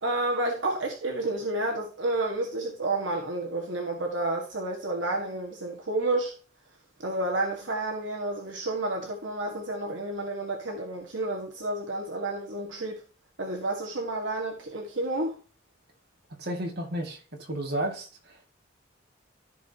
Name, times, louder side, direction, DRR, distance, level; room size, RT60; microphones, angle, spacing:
voice 1, 0.0-6.3 7.0-13.0 13.4-15.4, right 2 dB, 75° right, 1.8 m, -30 dB
voice 2, 16.4-18.5, right 1 dB, 55° right, 2.2 m, -33 dB
14.5 x 5.0 x 2.9 m
head